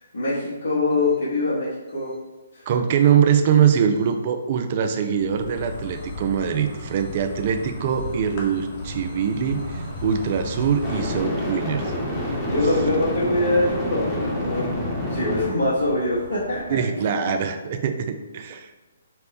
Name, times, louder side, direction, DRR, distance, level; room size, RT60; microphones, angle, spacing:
voice 1, 0.1-2.1 12.4-14.7 15.1-16.8, left 2 dB, 85° left, -10 dB, 1.1 m, -23 dB
voice 2, 2.7-11.9 16.7-18.7, right 7 dB, 45° right, 7 dB, 0.4 m, -22 dB
Insect, 5.2-11.2, left 2 dB, 45° left, 0.9 m, -35 dB
sound 1, 5.9-6.1 10.8-15.5, left 1 dB, 10° left, 0.9 m, -28 dB
sound 2, 9.4-16.8, right 2 dB, 70° right, 1.0 m, -39 dB
4.1 x 2.1 x 3.3 m, 1.1 s
hypercardioid pair, 140°, 0 cm